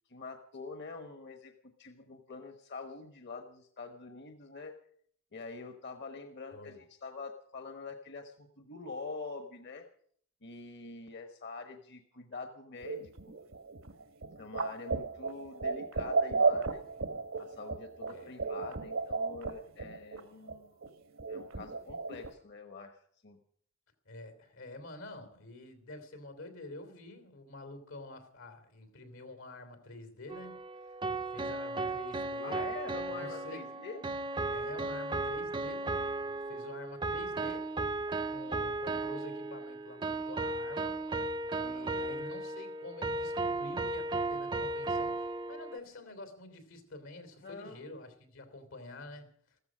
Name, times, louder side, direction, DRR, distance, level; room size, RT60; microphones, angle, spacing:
voice 1, 0.1-4.8 5.3-9.8 10.4-13.1 14.4-16.8 17.4-20.8 21.3-23.4 32.4-34.0 41.6-42.1 47.4-47.9, left 4 dB, 60° left, 1.2 m, -45 dB
sound 1, 12.8-20.2 20.5-20.6 20.8-20.9 21.2-22.3, right 4 dB, 75° right, 1.2 m, -34 dB
voice 2, 18.1-18.4 24.0-30.6 30.9-31.0 31.3-32.7 33.2-33.6 34.5-37.7 38.3-41.3 41.6-49.3, left 2 dB, 90° left, 3.2 m, -48 dB
sound 2, 30.3-45.8, right 2 dB, 25° right, 0.6 m, -35 dB
14.5 x 14.0 x 6.2 m
head